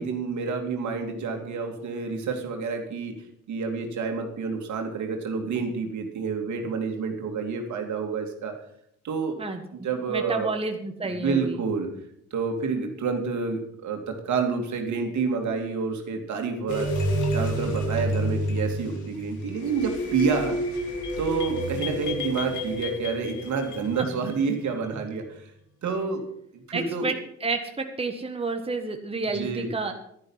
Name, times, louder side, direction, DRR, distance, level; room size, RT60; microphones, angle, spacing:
voice 1, 0.0-3.2 3.5-8.5 9.0-9.4 9.7-10.5 11.2-11.9 12.3-17.0 17.3-20.6 21.2-25.5 25.8-26.2 26.5-27.1 29.2-29.7, right 5 dB, 70° right, 3 dB, 2.6 m, -28 dB
voice 2, 9.4-11.6 26.7-27.1 27.4-29.9, right 3 dB, 20° right, 5 dB, 1.5 m, -30 dB
sound 1, 16.7-24.7, equal, 70° left, 3.3 m, -29 dB
11.5 x 11.0 x 5.7 m, 0.71 s
cardioid pair, 90°, 30 cm